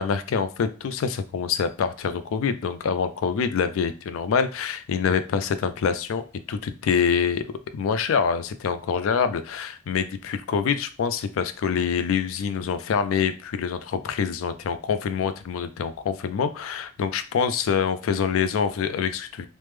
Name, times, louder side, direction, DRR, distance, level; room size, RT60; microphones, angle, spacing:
voice 1, 0.0-7.5 7.7-19.5, left 6 dB, 80° left, 11 dB, 0.3 m, -25 dB
3.3 x 2.1 x 3.1 m, 0.36 s
head